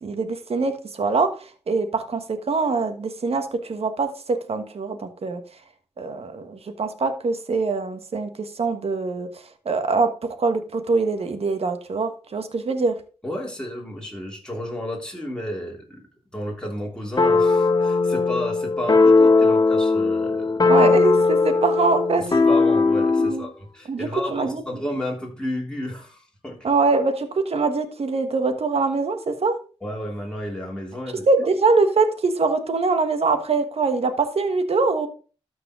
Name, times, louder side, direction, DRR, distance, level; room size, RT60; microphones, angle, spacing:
voice 1, 0.0-2.2 2.5-5.4 6.0-9.3 9.6-10.1 10.4-12.9 20.7-22.4 23.2-23.5 23.9-24.6 26.6-29.5 31.3-35.1, right 3 dB, 70° right, 8 dB, 1.4 m, -23 dB
voice 2, 13.2-20.7 22.5-26.7 29.8-31.3, left 1 dB, 5° left, -2 dB, 3.2 m, -32 dB
sound 1, 17.2-23.4, left 3 dB, 40° left, 1.0 m, -18 dB
13.0 x 4.7 x 3.7 m, 0.37 s
cardioid pair, 55°, 11 cm